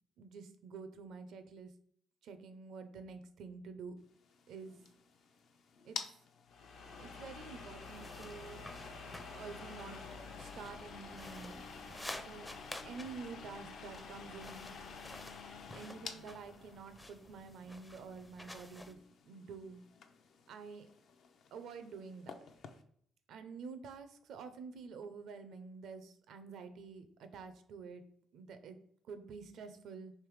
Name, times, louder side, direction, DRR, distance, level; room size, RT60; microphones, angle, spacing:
voice 1, 0.2-1.7 2.2-4.0 4.5-4.8 5.8-6.0 7.0-8.7 9.3-10.0 10.3-11.7 12.2-12.5 12.8-14.7 15.7-19.0 19.3-19.8 20.5-20.9 21.5-22.5 23.3-28.0 28.3-28.8 29.1-30.1, right 5 dB, 75° right, 10 dB, 0.5 m, -48 dB
sound 1, 4.1-22.8, left 6 dB, 70° left, 0.5 m, -52 dB
sound 2, 6.5-15.8, left 3 dB, 85° left, 0.9 m, -51 dB
sound 3, 7.8-18.9, left 1 dB, 10° left, 0.4 m, -52 dB
3.3 x 3.1 x 4.7 m, 0.64 s
cardioid pair, 90°, 0 cm